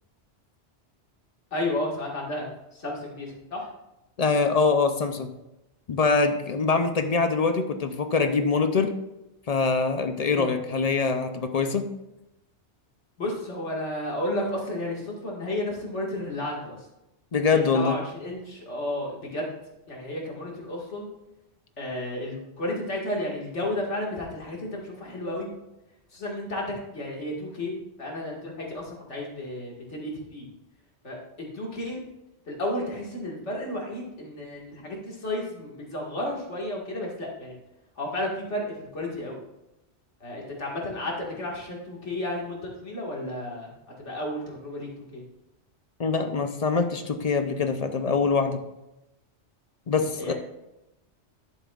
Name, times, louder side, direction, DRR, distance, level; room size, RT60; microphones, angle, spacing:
voice 1, 1.5-3.7 10.3-10.5 13.2-16.9 17.4-19.5 19.9-21.1 21.8-25.5 26.1-27.7 28.0-30.5 31.0-31.2 31.5-32.0 32.5-37.6 38.0-39.4 40.2-43.7 44.0-45.2 50.2-50.3, left 1 dB, 80° left, -2 dB, 2.2 m, -32 dB
voice 2, 4.2-5.3 5.9-8.9 9.5-11.9 17.3-18.0 46.0-48.6 49.9-50.3, left 4 dB, 45° left, 7 dB, 0.6 m, -24 dB
12.0 x 7.0 x 2.4 m, 0.93 s
omnidirectional pair, 1.2 m